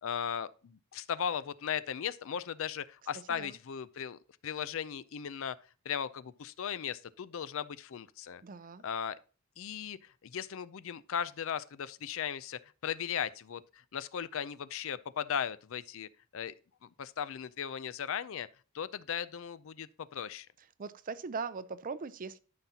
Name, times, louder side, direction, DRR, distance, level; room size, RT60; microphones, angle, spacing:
voice 1, 0.0-5.6 5.8-8.4 8.8-9.2 9.6-16.5 16.8-18.5 18.7-20.5, left 8 dB, 65° left, 0.4 m, -37 dB
voice 2, 3.1-3.6 8.4-8.8 20.8-22.4, right 5 dB, 40° right, 0.5 m, -40 dB
12.5 x 5.7 x 2.8 m
head